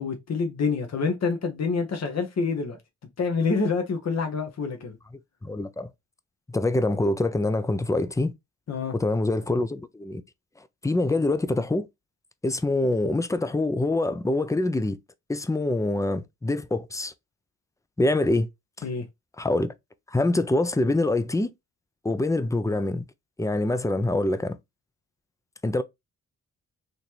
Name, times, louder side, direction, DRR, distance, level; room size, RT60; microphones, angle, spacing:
voice 1, 0.0-2.8 3.2-5.0 8.7-8.9 18.8-19.0, left 4 dB, 55° left, 1.3 m, -27 dB
voice 2, 5.4-5.9 6.5-8.3 8.9-10.2 10.8-11.9 12.4-15.0 15.3-17.1 18.0-18.5 18.8-18.9 19.4-19.7 20.1-21.5 22.0-23.1 23.4-24.6 25.6-25.8, left 2 dB, 10° left, 0.6 m, -25 dB
4.2 x 2.8 x 3.2 m
supercardioid pair, 55°, 32 cm